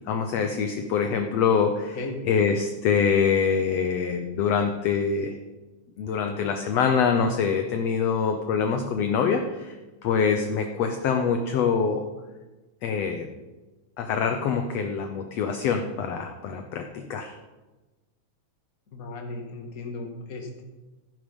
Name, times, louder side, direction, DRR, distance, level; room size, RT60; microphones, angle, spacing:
voice 1, 0.1-5.3 6.0-9.8 10.0-12.0 12.8-13.3 14.0-17.3, left 6 dB, 70° left, 5 dB, 1.7 m, -25 dB
voice 2, 18.9-20.6, left 2 dB, 30° left, 2 dB, 1.9 m, -36 dB
15.0 x 10.0 x 5.3 m, 1.2 s
omnidirectional pair, 3.7 m